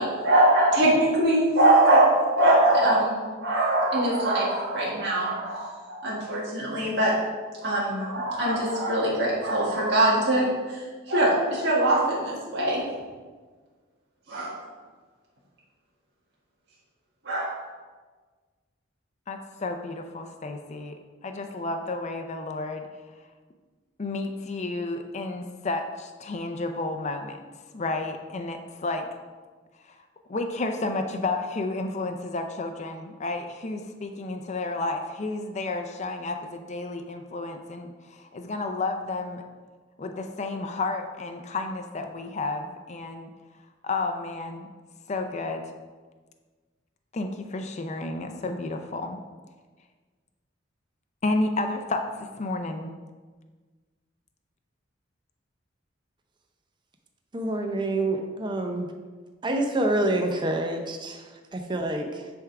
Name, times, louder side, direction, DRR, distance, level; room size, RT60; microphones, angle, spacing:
voice 1, 0.0-7.1 7.6-10.8 11.1-12.8 14.3-14.6 17.3-17.6, right 1 dB, 60° right, -6 dB, 1.8 m, -22 dB
voice 2, 19.3-22.9 24.0-27.4 27.7-29.1 29.8-30.0 30.3-39.4 40.0-43.3 43.8-44.7 45.1-45.7 47.1-49.2 51.2-53.0, left 2 dB, 35° left, 5 dB, 0.5 m, -31 dB
voice 3, 57.3-58.9 59.4-62.3, right 1 dB, 25° right, 3 dB, 0.6 m, -27 dB
9.7 x 3.6 x 4.7 m, 1.4 s
head